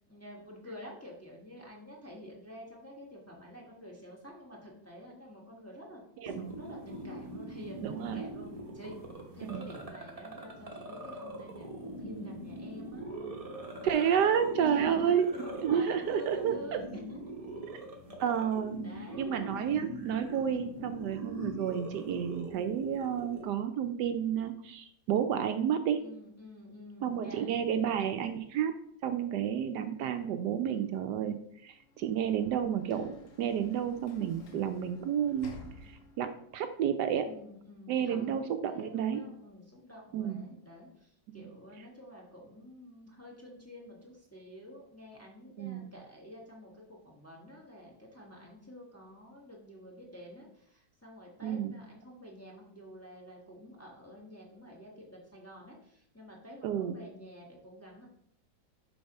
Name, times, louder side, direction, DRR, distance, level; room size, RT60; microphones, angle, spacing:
voice 1, 0.1-8.5 8.7-9.0 9.3-13.3 14.6-16.9 17.4-17.6 18.8-19.3 26.0-27.5 30.7-31.1 37.2-58.1, equal, 10° left, -2 dB, 1.2 m, -49 dB
voice 2, 6.2-6.5 7.8-8.2 9.5-9.6 13.8-15.3 15.6-16.8 18.2-18.8 19.2-26.0 27.0-28.7 29.0-31.4 31.6-35.5 35.9-37.3 37.9-39.2 40.1-40.4 45.6-45.9 51.4-51.7 56.6-57.0, right 8 dB, 75° right, 8 dB, 1.1 m, -31 dB
sound 1, 6.3-23.5, right 1 dB, 25° right, 0.9 m, -42 dB
Sliding door / Slam, 31.7-36.5, left 2 dB, 50° left, 1.2 m, -52 dB
6.9 x 3.5 x 5.3 m, 0.69 s
omnidirectional pair, 1.9 m